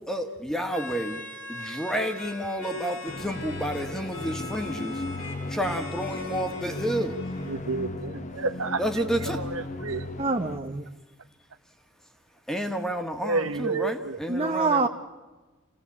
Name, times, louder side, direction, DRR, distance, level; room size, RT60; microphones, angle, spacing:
voice 1, 0.1-1.2 1.5-5.0 5.5-7.2 8.8-9.4 12.5-14.9, equal, 5° left, 6 dB, 1.7 m, -30 dB
sound 1, 0.7-7.5, left 3 dB, 70° left, 3.7 m, -41 dB
sound 2, 3.1-10.6, left 2 dB, 35° left, 1.2 m, -36 dB
voice 2, 7.4-10.1 13.2-14.2, right 3 dB, 80° right, 10 dB, 1.2 m, -31 dB
voice 3, 10.2-10.8 14.3-14.9, right 4 dB, 30° right, 5 dB, 0.8 m, -25 dB
28.0 x 17.0 x 8.5 m, 1.3 s
head